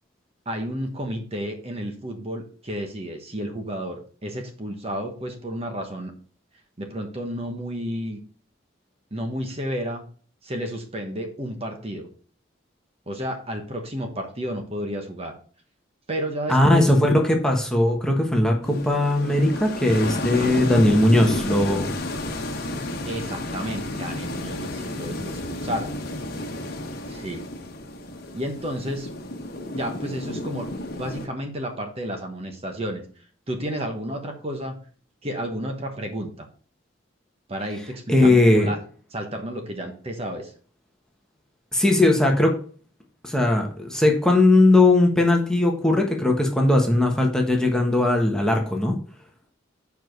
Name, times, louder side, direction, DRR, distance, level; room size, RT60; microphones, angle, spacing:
voice 1, 0.5-6.1 6.8-8.2 9.1-10.0 10.4-12.1 13.1-15.4 16.1-16.9 23.0-25.9 27.1-27.4 28.3-29.1 29.7-30.7 31.0-33.0 33.5-34.8 35.2-36.5 37.5-38.8 39.1-40.5, equal, 30° right, 4 dB, 1.1 m, -31 dB
voice 2, 16.5-21.9 38.1-38.7 41.7-42.6 43.2-49.0, left 2 dB, 5° left, 1 dB, 1.2 m, -19 dB
sound 1, 18.6-31.3, left 1 dB, 50° left, 1.2 m, -31 dB
7.3 x 4.7 x 5.3 m, 0.43 s
head